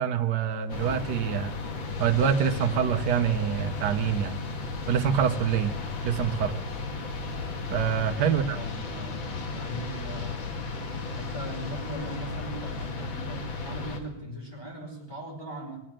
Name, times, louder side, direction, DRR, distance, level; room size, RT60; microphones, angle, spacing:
voice 1, 0.0-1.5 2.0-4.4 4.9-5.8 6.0-6.6 7.7-8.6, right 8 dB, 65° right, 6 dB, 1.5 m, -25 dB
sound 1, 0.7-14.0, left 3 dB, 85° left, 2.4 m, -34 dB
voice 2, 7.8-9.2 9.5-10.4 11.0-15.8, equal, 10° left, -3 dB, 4.9 m, -40 dB
21.0 x 8.5 x 7.6 m, 0.86 s
omnidirectional pair, 2.1 m